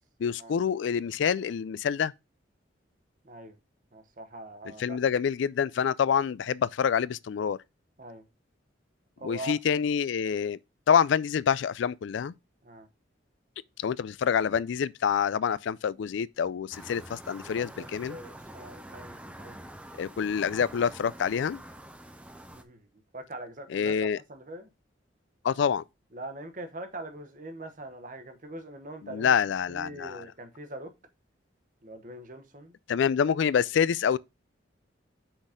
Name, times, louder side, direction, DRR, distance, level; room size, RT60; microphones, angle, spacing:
voice 1, 0.2-2.1 4.8-7.6 9.2-10.6 10.9-12.3 13.8-18.2 20.0-21.6 23.7-24.2 25.4-25.8 29.1-30.2 32.9-34.2, left 7 dB, 65° left, 0.3 m, -26 dB
voice 2, 3.2-3.6 3.9-5.0 8.0-8.2 9.2-9.6 12.6-12.9 17.6-19.6 22.5-22.9 23.1-24.7 26.1-29.3 29.7-30.9 31.8-32.7, right 1 dB, 40° right, 1.0 m, -42 dB
sound 1, 16.7-22.6, right 1 dB, 5° right, 0.6 m, -46 dB
6.0 x 4.1 x 5.0 m
head